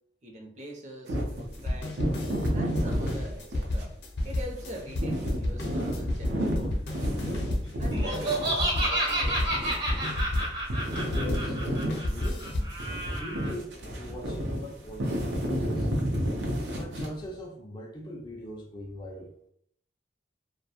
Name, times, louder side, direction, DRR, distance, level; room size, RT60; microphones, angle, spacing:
voice 1, 0.2-2.0 2.5-3.9 4.2-7.5 7.8-9.6, equal, 40° right, 1 dB, 0.5 m, -43 dB
sound 1, 1.1-3.9 4.3-10.4 10.7-17.3, equal, 90° right, 0.6 m, -31 dB
sound 2, 1.3-11.5 11.9-12.8, left 1 dB, 80° left, 0.6 m, -31 dB
Laughter, 7.9-13.5, right 1 dB, 70° right, 1.0 m, -30 dB
voice 2, 11.0-12.5 13.0-15.9 16.7-19.3, left 1 dB, 25° left, -1 dB, 0.3 m, -41 dB
2.3 x 2.1 x 2.8 m, 0.66 s
head